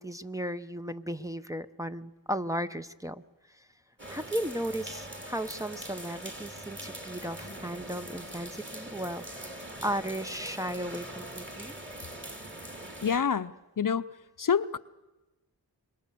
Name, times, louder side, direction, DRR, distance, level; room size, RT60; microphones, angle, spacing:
voice 1, 0.0-3.2 3.6-3.7 4.1-11.7, equal, 10° right, 7 dB, 0.7 m, -35 dB
sound 1, 4.0-13.2, right 1 dB, 25° right, 3.5 m, -42 dB
voice 2, 13.0-14.1 14.4-14.8, left 7 dB, 50° left, 13 dB, 0.7 m, -27 dB
25.5 x 22.0 x 6.9 m, 1.1 s
cardioid pair, 50°, 41 cm